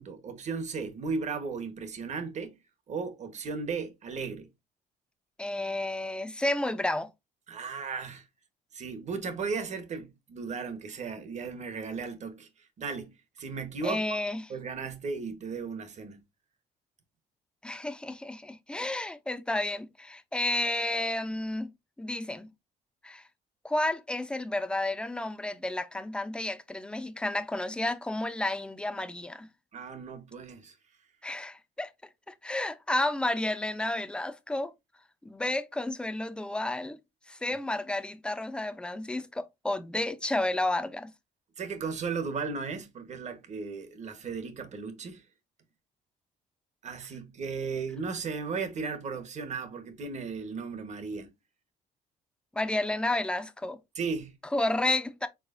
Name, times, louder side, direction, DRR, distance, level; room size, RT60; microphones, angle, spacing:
voice 1, 0.0-2.5 2.9-4.5 7.5-8.2 8.7-12.5 12.8-14.0 14.5-16.2 29.7-30.7 41.6-45.2 46.8-51.3 53.9-54.3, right 5 dB, 45° right, 1.2 m, -35 dB
voice 2, 5.4-7.1 13.8-14.5 17.6-21.7 22.0-22.5 23.0-23.2 23.6-29.5 31.2-31.9 32.3-34.7 35.2-37.0 37.3-41.1 52.5-53.8 54.5-55.3, left 2 dB, 5° left, 0.6 m, -31 dB
4.8 x 3.9 x 2.5 m
cardioid pair, 110°, 17 cm